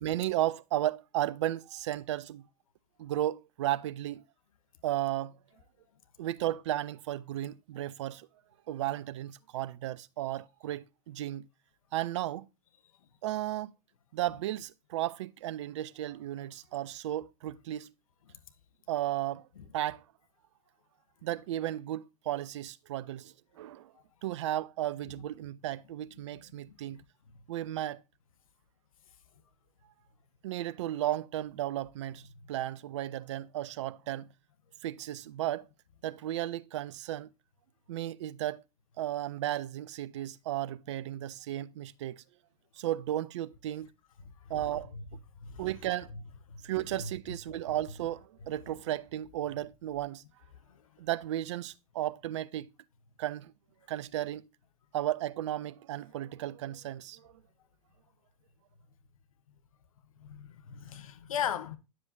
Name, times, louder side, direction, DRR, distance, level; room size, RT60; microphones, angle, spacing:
voice 1, 0.0-2.5 3.0-4.2 4.8-5.4 6.2-8.3 8.7-11.5 11.9-12.5 13.2-13.7 14.1-17.9 18.9-19.5 19.7-20.0 21.2-23.9 24.2-27.0 27.5-28.0 30.4-32.2 32.5-34.3 34.8-35.7 36.0-37.3 37.9-38.6 39.0-42.2 42.8-43.9 44.5-44.9 45.6-46.1 46.6-50.2 51.0-52.7 53.2-53.5 53.9-54.5 54.9-57.3, right 13 dB, 50° right, 0.5 m, -34 dB
voice 2, 26.3-27.0 44.9-45.0 45.4-45.7 46.5-46.6 47.0-47.1 60.2-61.8, left 8 dB, 65° left, 0.9 m, -38 dB
9.8 x 7.7 x 2.6 m
figure-of-eight pair, 100°, 19 cm